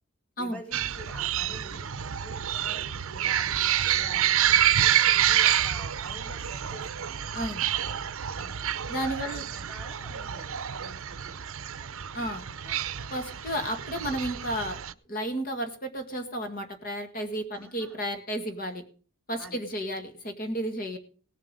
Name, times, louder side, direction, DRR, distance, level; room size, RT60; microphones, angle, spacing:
voice 1, 0.4-1.9 2.2-4.9 5.3-7.1 7.8-8.0 8.3-8.6 9.2-11.4 11.8-12.0 12.6-12.8 17.5-18.0 19.4-19.6, right 1 dB, 5° left, 0 dB, 3.6 m, -47 dB
sound 1, 0.7-14.9, right 10 dB, 70° right, 0.7 m, -28 dB
voice 2, 7.3-7.7 8.9-9.4 12.1-12.4 13.1-14.8 15.1-18.8 19.3-21.0, equal, 40° left, 6 dB, 1.7 m, -32 dB
17.5 x 7.7 x 5.2 m, 0.41 s
head